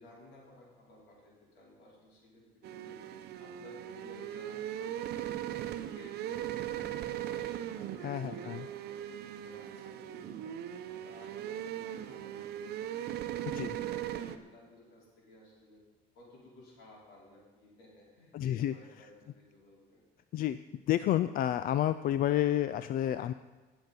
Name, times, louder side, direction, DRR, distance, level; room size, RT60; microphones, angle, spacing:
voice 1, 0.0-3.0 3.4-5.6 5.9-9.0 9.4-10.5 10.9-13.1 13.5-15.8 16.1-20.0, left 1 dB, 85° left, -4 dB, 4.9 m, -56 dB
sound 1, 2.6-14.4, right 11 dB, 70° right, 0.8 m, -39 dB
voice 2, 8.0-8.7 13.5-13.7 18.3-18.7 20.3-20.6 20.9-23.3, left 12 dB, 60° left, 13 dB, 0.4 m, -30 dB
18.5 x 7.0 x 5.4 m, 1.3 s
cardioid pair, 110°, 17 cm